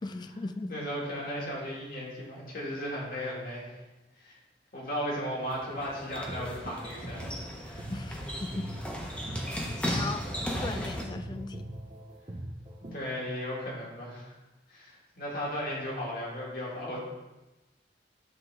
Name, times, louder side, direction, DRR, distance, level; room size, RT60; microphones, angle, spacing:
voice 1, 0.0-0.7 7.9-8.7 9.4-10.3 10.6-11.7, left 3 dB, 25° left, 9 dB, 0.3 m, -38 dB
voice 2, 0.7-3.8 4.2-4.3 4.7-7.9 9.4-9.6 12.8-14.3 14.7-17.0, equal, 55° left, -4 dB, 1.8 m, -36 dB
sound 1, 5.4-11.0, equal, 5° left, 0.8 m, -36 dB
sound 2, 6.1-13.1, right 1 dB, 30° right, 0.5 m, -42 dB
7.9 x 3.8 x 3.4 m, 1.1 s
head